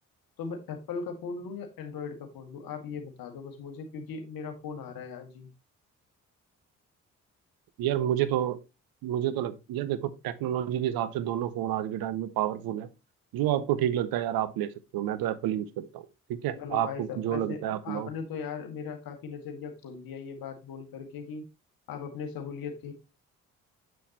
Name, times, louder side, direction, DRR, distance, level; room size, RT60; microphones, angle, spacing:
voice 1, 0.4-5.5 16.6-21.4 21.9-22.9, left 5 dB, 65° left, 1.9 m, -38 dB
voice 2, 7.8-8.6 9.0-12.9 13.3-18.1, right 11 dB, 70° right, 0.8 m, -29 dB
7.8 x 6.2 x 3.0 m
hypercardioid pair, 40°, 38 cm